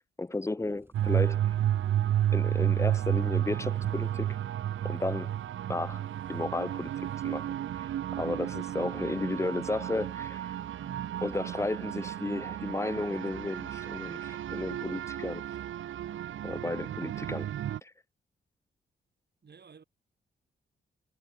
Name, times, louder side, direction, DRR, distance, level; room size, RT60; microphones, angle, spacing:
voice 1, 0.2-1.5 2.3-4.4 4.8-5.4 5.7-6.0 6.3-7.8 8.2-10.6 11.2-15.4 16.4-17.5 17.8-17.9, left 2 dB, 15° left, 0.5 m, -34 dB
sound 1, 0.6-12.8, right 1 dB, 10° right, 7.6 m, -60 dB
sound 2, 0.9-17.8, right 11 dB, 75° right, 0.9 m, -32 dB
voice 2, 10.8-11.2 19.4-19.8, right 6 dB, 55° right, 6.2 m, -48 dB
supercardioid pair, 50°, 20 cm